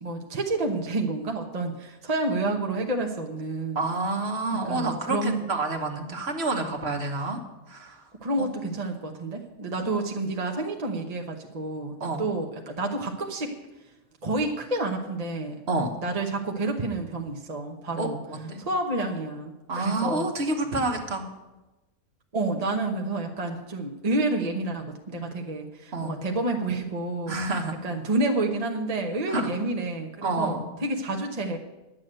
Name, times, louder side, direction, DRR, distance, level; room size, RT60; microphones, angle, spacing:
voice 1, 0.0-3.9 4.6-5.4 8.2-13.5 14.2-15.6 16.0-18.2 18.6-20.3 22.3-31.6, right 2 dB, 30° right, 2 dB, 0.9 m, -29 dB
voice 2, 3.7-7.4 7.7-8.0 8.4-8.5 12.0-12.3 15.7-15.9 18.0-18.6 19.7-21.3 25.9-26.1 27.3-27.8 29.3-29.5 30.2-30.7, right 2 dB, 45° right, 3 dB, 1.5 m, -28 dB
10.5 x 7.5 x 7.8 m, 1.1 s
omnidirectional pair, 1.6 m